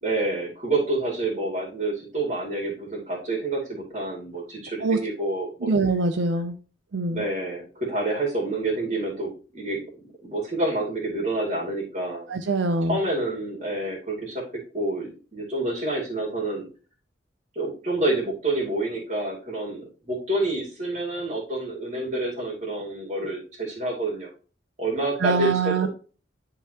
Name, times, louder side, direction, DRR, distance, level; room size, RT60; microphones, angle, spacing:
voice 1, 0.0-5.7 7.1-9.8 10.2-12.3 12.9-14.4 14.7-16.7 17.6-24.3 24.8-25.9, right 2 dB, 40° right, -2 dB, 2.5 m, -28 dB
voice 2, 5.6-6.6 6.9-7.2 12.3-13.0 25.2-25.9, right 3 dB, 80° right, 7 dB, 0.6 m, -24 dB
11.0 x 3.9 x 2.9 m, 0.37 s
head